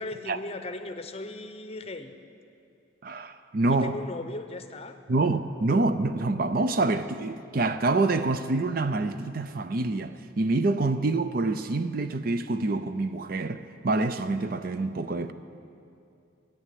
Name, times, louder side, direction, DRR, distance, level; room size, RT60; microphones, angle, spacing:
voice 1, 0.0-2.1 3.7-5.0, left 2 dB, 30° left, 0.7 m, -37 dB
voice 2, 3.0-4.0 5.1-15.3, right 2 dB, 45° right, 0.5 m, -26 dB
14.0 x 9.9 x 8.4 m
head